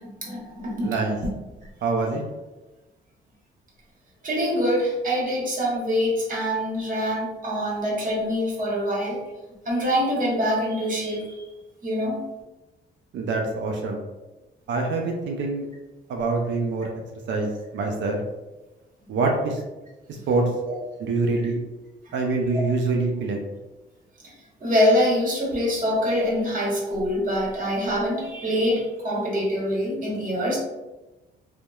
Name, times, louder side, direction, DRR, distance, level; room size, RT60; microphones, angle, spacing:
voice 1, 0.2-1.0 4.2-9.2 9.6-11.4 11.8-12.2 20.7-20.8 24.6-30.6, equal, 40° right, -4 dB, 1.1 m, -24 dB
voice 2, 0.8-1.2 1.8-2.2 13.1-14.0 14.7-15.7 16.1-16.9 17.3-18.2 19.1-19.6 20.3-20.4 21.0-21.6 22.1-23.4, right 3 dB, 65° right, 1 dB, 0.4 m, -25 dB
2.8 x 2.1 x 2.3 m, 1.1 s
cardioid pair, 90°, 20 cm